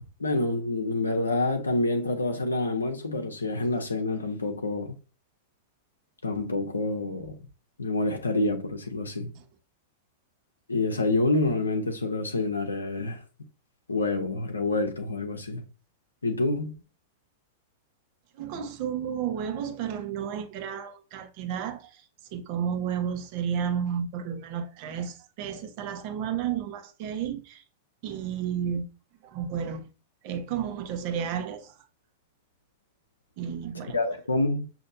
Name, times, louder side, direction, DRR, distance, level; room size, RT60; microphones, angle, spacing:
voice 1, 0.2-5.0 6.2-7.4 7.8-9.3 10.7-13.2 13.9-15.6 16.2-16.7 33.9-34.7, left 2 dB, 80° left, 0.8 m, -27 dB
voice 2, 18.4-22.0 22.3-27.6 28.0-28.9 29.2-29.8 30.2-31.7 33.4-34.0, right 8 dB, 45° right, 1.0 m, -32 dB
6.4 x 2.8 x 2.6 m
figure-of-eight pair, 100°, 0 cm